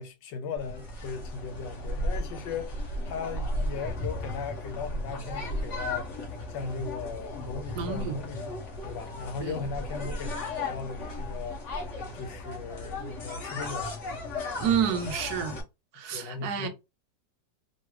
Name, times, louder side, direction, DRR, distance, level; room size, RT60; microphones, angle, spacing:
voice 1, 0.0-6.1 6.5-8.5 8.8-10.3 10.6-13.9 14.6-14.7 14.9-15.0 16.1-16.7, left 5 dB, 90° left, 1.4 m, -37 dB
sound 1, 0.6-15.6, left 1 dB, 45° left, 1.2 m, -35 dB
voice 2, 7.8-8.2 9.4-9.7 14.6-15.6 15.9-16.7, right 7 dB, 70° right, 1.1 m, -29 dB
3.2 x 2.6 x 3.0 m
omnidirectional pair, 2.0 m